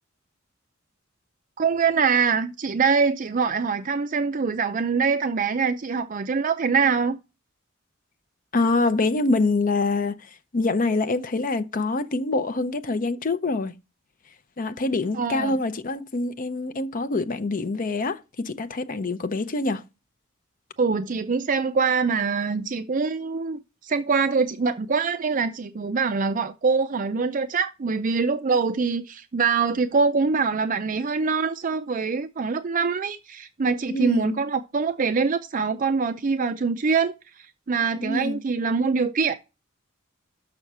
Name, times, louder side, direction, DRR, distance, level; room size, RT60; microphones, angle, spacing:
voice 1, 1.6-7.2 15.1-15.6 20.8-39.4, right 5 dB, 40° right, 0.5 m, -24 dB
voice 2, 8.5-13.7 14.6-19.8 33.9-34.5 38.0-38.4, left 3 dB, 45° left, 0.6 m, -25 dB
6.3 x 6.0 x 5.5 m
head